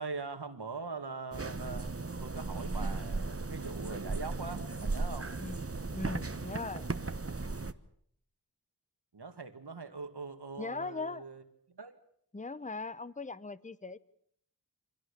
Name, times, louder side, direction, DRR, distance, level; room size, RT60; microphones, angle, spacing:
voice 1, 0.0-1.9 2.2-5.3 9.1-11.4 11.7-12.0, right 4 dB, 80° right, 8 dB, 2.3 m, -42 dB
sound 1, 1.3-7.7, right 3 dB, 35° right, 1.2 m, -36 dB
voice 2, 5.9-6.9 10.6-11.2 12.3-14.0, left 3 dB, 20° left, 17 dB, 0.9 m, -39 dB
25.0 x 17.0 x 8.6 m, 0.67 s
wide cardioid pair, 50°, 39 cm